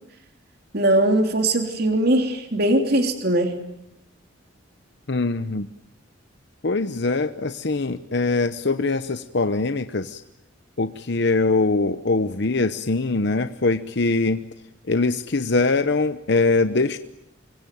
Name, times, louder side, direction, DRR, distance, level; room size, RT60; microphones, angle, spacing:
voice 1, 0.7-3.6, right 1 dB, 55° right, 5 dB, 3.2 m, -20 dB
voice 2, 5.1-5.7 6.6-10.2 10.8-14.4 14.9-17.0, left 3 dB, 60° left, 10 dB, 1.0 m, -22 dB
26.5 x 23.5 x 9.3 m, 0.81 s
head